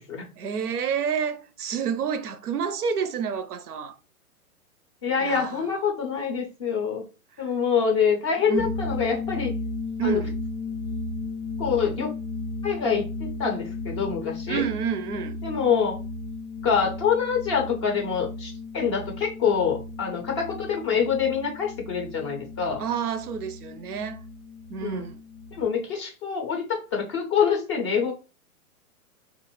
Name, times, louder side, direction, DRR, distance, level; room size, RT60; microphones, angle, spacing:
voice 1, 0.4-3.9 5.2-5.6 8.5-8.7 10.0-10.4 14.5-15.4 22.8-24.2 24.7-25.2, right 7 dB, 85° right, 0.6 m, -29 dB
voice 2, 5.0-7.0 7.4-9.6 10.0-10.2 11.6-12.1 12.6-14.6 15.4-16.0 16.6-22.8 24.8-25.1 25.5-28.1, left 6 dB, 20° left, 0.4 m, -25 dB
sound 1, 8.6-25.6, left 3 dB, 80° left, 0.5 m, -35 dB
2.5 x 2.4 x 2.9 m
hypercardioid pair, 120°, 44 cm